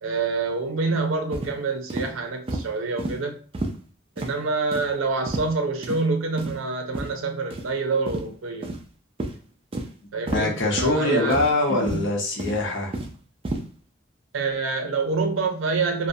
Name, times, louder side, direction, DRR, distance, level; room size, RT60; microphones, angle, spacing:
voice 1, 0.0-3.4 4.2-8.7 10.1-11.4 11.7-12.0 14.3-16.1, right 3 dB, 85° right, 4 dB, 0.6 m, -26 dB
sound 1, 1.3-1.5 1.9-2.1 2.5-2.7 3.0-3.1 3.5-3.8 4.2-4.3 4.7-4.9 5.3-5.5 5.8-6.0 6.4-6.6 6.9-7.1 7.5-7.7 8.1-8.2 8.6-8.9 9.2-9.3 9.7-9.9 10.3-10.4 10.8-11.0 11.3-11.5 11.9-12.1 12.4-13.1 13.4-13.6, right 2 dB, 30° right, 0.3 m, -30 dB
voice 2, 10.3-13.0, left 2 dB, 65° left, 0 dB, 0.7 m, -23 dB
2.4 x 2.1 x 2.6 m, 0.42 s
head